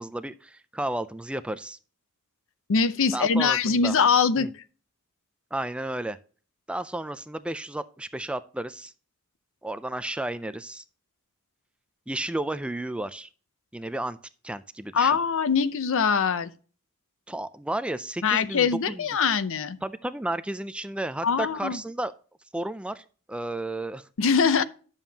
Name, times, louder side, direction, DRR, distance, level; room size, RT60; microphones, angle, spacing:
voice 1, 0.0-1.8 3.1-4.0 4.4-4.5 5.5-6.2 6.7-8.9 9.6-10.8 12.1-13.3 13.7-14.2 14.4-15.2 17.3-19.0 19.8-22.1 22.5-24.1, right 1 dB, 5° right, 0.3 m, -32 dB
voice 2, 2.7-4.5 14.9-16.5 18.2-19.8 21.2-21.8 24.2-24.6, left 5 dB, 65° left, 0.6 m, -23 dB
10.5 x 7.2 x 2.8 m
head